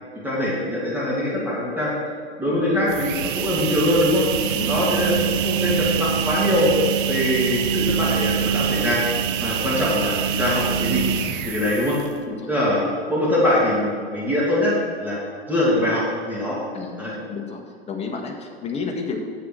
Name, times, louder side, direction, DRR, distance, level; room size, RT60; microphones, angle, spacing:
voice 1, 0.2-1.9 2.4-4.2 4.7-6.7 7.1-9.0 9.4-11.0 11.4-12.0 12.5-12.8 13.1-16.6 17.0-17.2, left 1 dB, 5° right, -7 dB, 2.6 m, -22 dB
sound 1, 2.8-12.2, right 8 dB, 55° right, 0.7 m, -25 dB
voice 2, 12.3-12.9 16.7-17.6 17.9-19.2, left 4 dB, 20° left, 1 dB, 1.4 m, -32 dB
10.0 x 7.4 x 4.6 m, 2.1 s
figure-of-eight pair, 95°, 32 cm